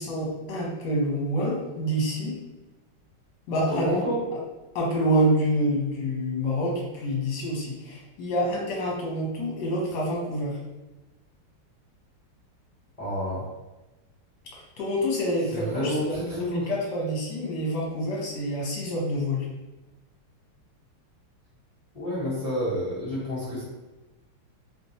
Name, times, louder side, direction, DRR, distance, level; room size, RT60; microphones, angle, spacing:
voice 1, 0.0-2.3 3.5-3.9 4.7-10.5 14.8-19.4, equal, 60° left, -3 dB, 1.4 m, -27 dB
voice 2, 3.7-4.2 13.0-13.5 15.5-16.7 21.9-23.6, equal, 35° left, -10 dB, 0.6 m, -29 dB
3.4 x 2.9 x 2.7 m, 1.1 s
omnidirectional pair, 2.3 m